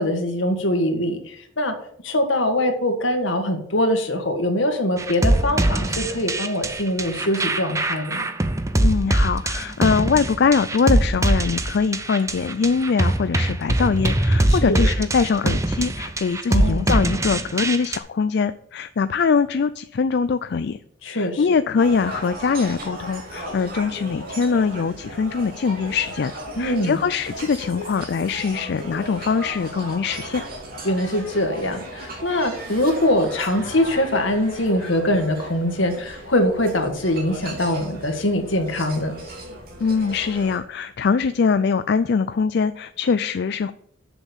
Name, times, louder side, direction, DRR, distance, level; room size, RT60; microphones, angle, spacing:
voice 1, 0.0-1.7 2.0-8.3 14.5-14.8 16.5-16.9 21.0-21.4 26.6-27.0 30.8-39.1, left 1 dB, 75° left, 5 dB, 1.7 m, -23 dB
sound 1, 5.0-18.0, right 1 dB, 15° right, 0.6 m, -22 dB
voice 2, 8.8-20.8 21.1-26.3 26.6-30.4 39.8-43.7, left 5 dB, 55° left, 12 dB, 0.4 m, -22 dB
sound 2, 21.8-40.6, right 1 dB, 50° right, 2.8 m, -36 dB
7.3 x 7.0 x 7.1 m, 0.68 s
head